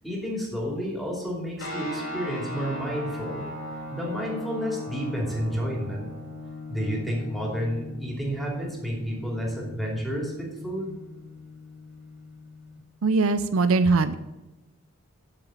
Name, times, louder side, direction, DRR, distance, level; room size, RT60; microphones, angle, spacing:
voice 1, 0.0-3.4 3.9-6.1 6.7-11.0, equal, ahead, -2 dB, 2.8 m, -30 dB
sound 1, 1.6-12.8, left 1 dB, 65° left, 2.7 m, -38 dB
voice 2, 13.0-14.1, right 3 dB, 70° right, 12 dB, 0.5 m, -21 dB
7.6 x 7.4 x 7.7 m, 1.0 s
head